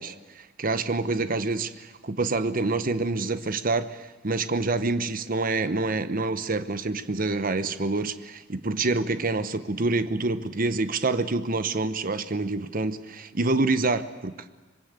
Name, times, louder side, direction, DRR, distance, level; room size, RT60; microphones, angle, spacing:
voice 1, 0.0-14.5, right 3 dB, 45° right, 12 dB, 1.0 m, -27 dB
25.5 x 22.0 x 8.2 m, 1.2 s
head